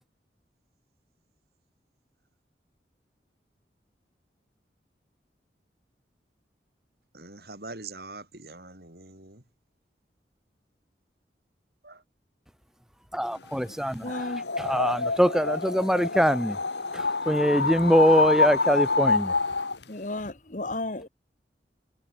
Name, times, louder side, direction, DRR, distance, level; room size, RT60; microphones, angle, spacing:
voice 1, 7.1-9.4 11.8-12.0, right 3 dB, 60° right, 5.1 m, -43 dB
voice 2, 13.1-16.6 16.9-19.3, equal, 5° right, 5.3 m, -23 dB
voice 3, 14.0-14.4 19.9-21.1, left 2 dB, 45° left, 1.4 m, -33 dB
sound 1, 14.1-19.8, left 4 dB, 80° left, 2.6 m, -26 dB
head